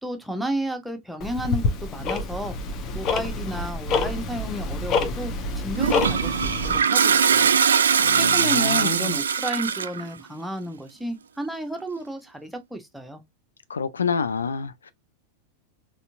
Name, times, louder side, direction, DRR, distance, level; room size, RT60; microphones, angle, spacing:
voice 1, 0.0-2.6 2.9-6.4 6.6-7.5 8.1-13.2, right 1 dB, 5° right, 1.0 m, -32 dB
Tick-tock, 1.2-6.8, left 3 dB, 35° left, 0.9 m, -27 dB
Toilet flush, 5.8-10.0, right 7 dB, 70° right, 0.3 m, -21 dB
voice 2, 8.0-9.2 13.7-14.9, left 5 dB, 70° left, 0.4 m, -28 dB
4.1 x 3.5 x 2.6 m
figure-of-eight pair, 90°, 0 cm